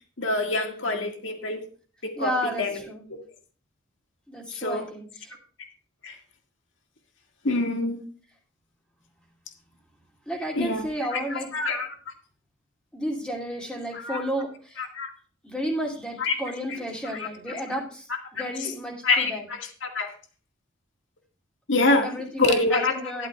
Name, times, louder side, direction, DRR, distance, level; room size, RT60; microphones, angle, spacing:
voice 1, 0.2-1.6 2.0-2.3 2.6-2.7 4.5-4.8 6.0-6.2 7.4-8.0 10.6-11.9 14.0-14.2 14.8-15.1 16.2-16.4 17.1-17.3 18.4-18.7 19.0-20.1 21.7-22.1 22.4-23.3, left 3 dB, 65° left, 3 dB, 1.9 m, -26 dB
voice 2, 2.2-3.1 4.3-5.3 10.3-11.5 12.9-14.9 15.4-19.4 22.0-23.3, equal, 5° left, -1 dB, 2.7 m, -32 dB
12.0 x 12.0 x 2.4 m, 0.40 s
head